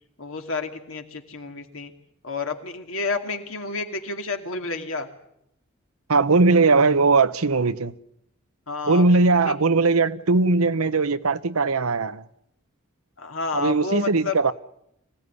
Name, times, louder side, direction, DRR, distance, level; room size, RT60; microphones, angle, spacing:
voice 1, 0.2-1.9 2.2-5.1 8.7-9.0 9.4-9.5 13.2-14.3, left 3 dB, 70° left, 2.6 m, -30 dB
voice 2, 6.1-7.9 8.9-12.2 13.5-14.5, right 3 dB, 90° right, 0.9 m, -19 dB
25.0 x 17.0 x 9.8 m
head